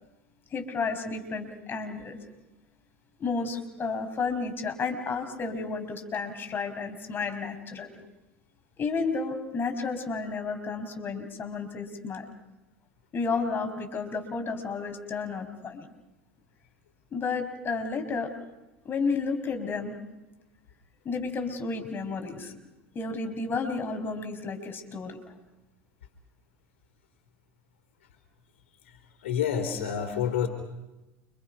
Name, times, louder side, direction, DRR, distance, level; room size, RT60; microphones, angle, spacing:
voice 1, 0.5-2.2 3.2-8.0 8.8-12.3 13.1-15.9 17.1-18.3 18.8-19.9 21.0-22.6 22.9-25.3, left 4 dB, 30° left, 7 dB, 5.6 m, -32 dB
voice 2, 29.2-30.5, left 8 dB, 80° left, 8 dB, 3.9 m, -28 dB
30.0 x 26.5 x 5.9 m, 1.0 s
hypercardioid pair, 85°, 7 cm